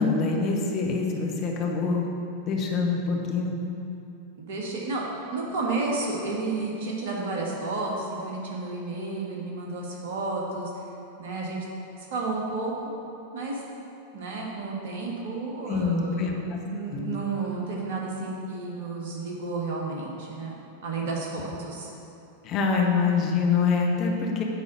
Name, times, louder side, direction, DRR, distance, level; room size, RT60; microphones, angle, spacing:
voice 1, 0.0-2.1 2.5-3.5 15.7-16.6 16.9-17.2 22.4-24.4, left 4 dB, 35° left, 0 dB, 1.0 m, -25 dB
voice 2, 4.4-5.0 5.3-10.7 11.2-11.6 12.0-12.7 13.3-13.6 14.1-16.3 16.7-20.6 20.8-21.9, right 3 dB, 55° right, -2 dB, 1.5 m, -31 dB
9.1 x 3.7 x 6.3 m, 2.8 s
figure-of-eight pair, 90°, 0 cm